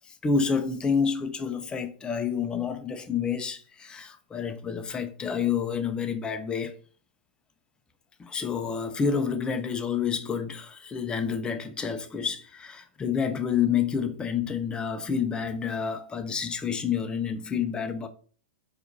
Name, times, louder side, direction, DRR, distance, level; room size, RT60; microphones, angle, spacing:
voice 1, 0.1-6.8 8.2-18.1, left 6 dB, 15° left, 0.4 m, -29 dB
4.3 x 2.4 x 2.5 m
hypercardioid pair, 120°, 6 cm